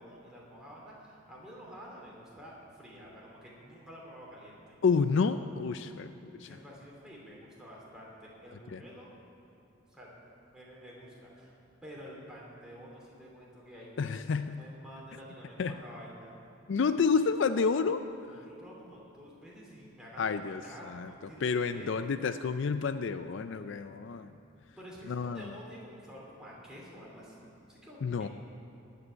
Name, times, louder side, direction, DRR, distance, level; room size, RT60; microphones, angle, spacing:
voice 1, 0.0-4.6 6.4-9.1 9.9-10.1 10.5-11.5 11.8-16.3 18.2-21.4 21.7-22.1 24.8-28.3, equal, 5° right, -5 dB, 2.9 m, -49 dB
voice 2, 4.8-6.6 8.7-8.8 14.0-14.6 15.6-15.8 16.7-18.0 20.2-21.1 21.4-24.3 25.1-25.5 28.0-28.3, left 5 dB, 60° left, 10 dB, 0.4 m, -29 dB
15.5 x 5.4 x 10.0 m, 2.9 s
head